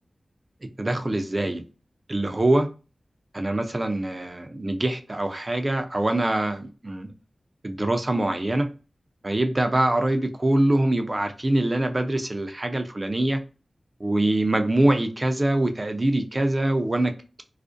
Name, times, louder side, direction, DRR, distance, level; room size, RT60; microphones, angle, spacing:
voice 1, 0.8-1.6 2.1-2.7 3.3-7.1 7.6-8.7 9.2-13.4 14.0-17.1, right 1 dB, 40° right, 0.4 m, -24 dB
2.4 x 2.1 x 2.5 m
cardioid pair, 40°, 0 cm